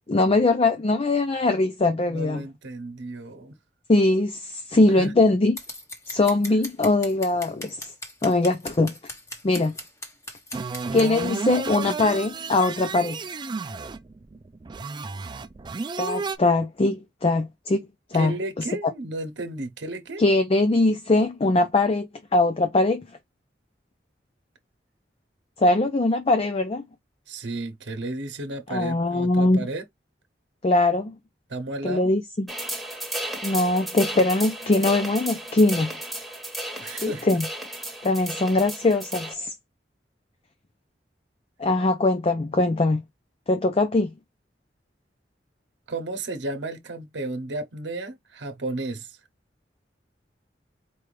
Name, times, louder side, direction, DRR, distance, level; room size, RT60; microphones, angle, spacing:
voice 1, 0.1-2.5 3.9-5.6 6.1-7.9 8.2-8.9 9.4-9.7 10.9-13.2 16.0-18.7 20.2-23.1 25.6-26.8 28.7-29.7 30.6-31.1 31.8-32.5 33.4-35.9 37.0-37.5 38.0-39.5 41.6-43.0 43.5-44.1, left 2 dB, 35° left, 0.5 m, -21 dB
voice 2, 2.1-3.5 4.9-5.1 18.1-20.2 27.3-29.8 31.5-32.1 36.8-37.4 45.9-49.1, right 2 dB, 85° right, 0.8 m, -33 dB
Scissors, 5.6-11.1, left 1 dB, 15° left, 1.1 m, -38 dB
sound 1, 10.5-16.4, right 4 dB, 25° right, 0.3 m, -32 dB
sound 2, 32.5-39.3, right 1 dB, ahead, 1.4 m, -34 dB
4.6 x 2.4 x 3.2 m
head